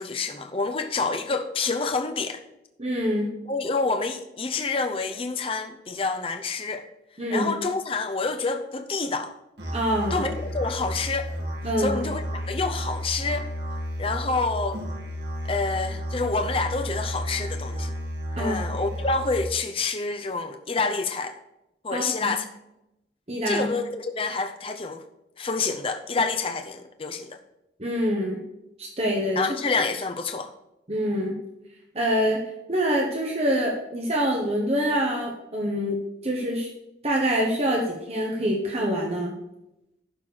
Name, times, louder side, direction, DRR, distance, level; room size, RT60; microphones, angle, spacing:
voice 1, 0.0-2.4 3.4-6.9 7.3-9.3 10.1-11.3 11.8-13.5 14.0-14.8 15.5-17.9 18.4-21.4 21.8-22.4 23.5-25.0 25.4-27.4 29.4-30.5, left 4 dB, 30° left, 6 dB, 0.6 m, -28 dB
voice 2, 2.8-3.3 7.2-7.5 9.7-10.3 11.6-12.0 18.4-18.6 21.9-22.3 23.3-23.7 27.8-28.4 28.8-29.5 30.9-31.3 31.9-32.4 32.7-36.0 36.2-36.7 37.0-39.3, equal, 35° right, -1 dB, 1.4 m, -25 dB
Musical instrument, 9.6-19.5, equal, 65° right, 2.3 m, -32 dB
12.0 x 4.5 x 6.4 m, 0.90 s
head